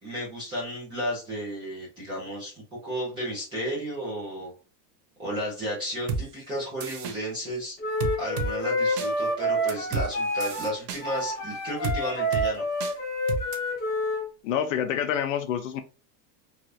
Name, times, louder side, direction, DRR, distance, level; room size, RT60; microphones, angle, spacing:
voice 1, 0.0-4.5 5.2-7.8 8.2-12.6, equal, 10° right, -5 dB, 0.5 m, -33 dB
sound 1, 6.1-6.2 6.8-7.2 8.0-8.5 9.0-9.1 9.7-10.1 10.4-11.0 11.8-12.0 12.3-12.5 12.8-12.9 13.3-13.6, right 4 dB, 70° right, 0.7 m, -30 dB
Wind instrument woodwind instrument, 7.8-14.2, equal, 20° left, 1.0 m, -28 dB
voice 2, 14.4-15.8, left 9 dB, 55° left, 8 dB, 0.5 m, -27 dB
3.4 x 2.4 x 2.6 m, 0.34 s
supercardioid pair, 175°, 47 cm